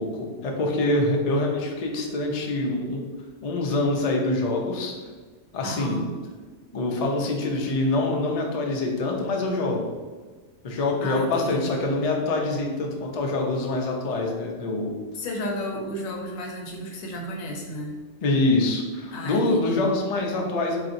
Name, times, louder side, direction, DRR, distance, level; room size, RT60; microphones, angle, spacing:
voice 1, 0.0-3.0 3.4-5.0 5.5-6.0 6.7-9.9 10.6-14.9 18.2-20.8, left 2 dB, 55° left, 0 dB, 0.4 m, -25 dB
voice 2, 5.6-6.1 11.0-11.7 15.1-18.0 19.1-19.9, equal, 80° left, 0 dB, 1.1 m, -33 dB
4.1 x 2.8 x 2.5 m, 1.4 s
omnidirectional pair, 1.3 m